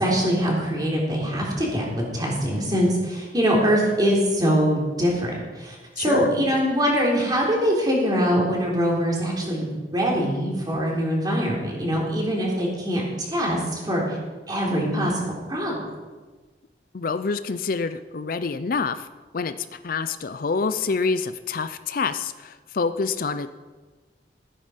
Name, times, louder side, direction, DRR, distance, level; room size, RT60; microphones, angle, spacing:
voice 1, 0.0-5.3 5.6-14.2 14.5-15.9, equal, 25° right, -3 dB, 3.6 m, -23 dB
voice 2, 6.0-6.3 16.9-19.1 19.3-23.5, left 4 dB, 50° left, 11 dB, 0.5 m, -27 dB
15.5 x 9.8 x 5.2 m, 1.3 s
head